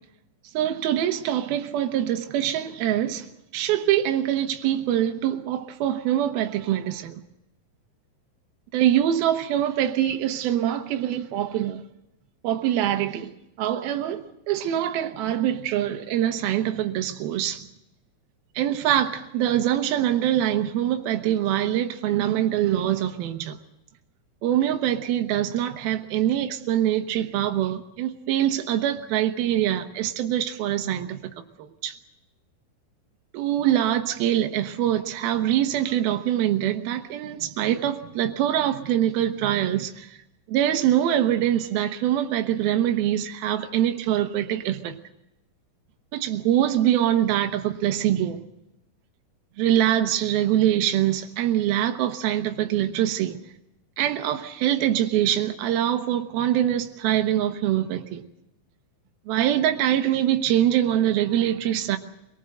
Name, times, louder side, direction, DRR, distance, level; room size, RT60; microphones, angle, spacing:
voice 1, 0.5-3.3 3.5-7.2 8.7-11.8 12.4-13.3 13.6-17.7 18.6-23.6 24.4-31.2 31.6-31.9 33.3-40.1 40.5-45.0 46.1-48.4 49.6-53.4 54.0-58.2 59.3-62.0, right 11 dB, 80° right, 3.0 m, -24 dB
26.0 x 19.0 x 7.8 m
omnidirectional pair, 4.3 m